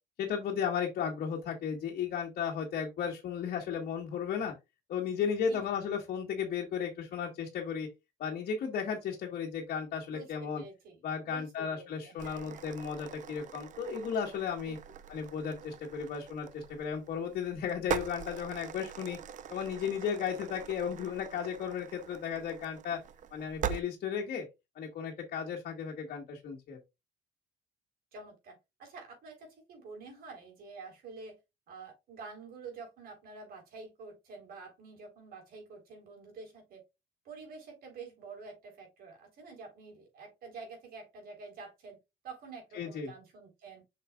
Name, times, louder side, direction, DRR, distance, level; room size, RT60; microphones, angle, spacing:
voice 1, 0.2-4.5 4.9-7.9 8.2-10.6 11.0-14.8 15.1-19.2 19.5-23.0 23.3-24.5 24.7-26.8 42.7-43.1, left 7 dB, 60° left, -1 dB, 1.6 m, -35 dB
voice 2, 5.4-5.7 10.1-12.7 14.6-14.8 28.1-31.4 31.7-36.8 37.2-42.0 42.2-43.8, right 4 dB, 65° right, 3 dB, 3.8 m, -48 dB
sound 1, 12.2-23.8, right 8 dB, 50° right, 0.6 m, -42 dB
7.5 x 5.8 x 2.4 m, 0.23 s
cardioid pair, 110°, 17 cm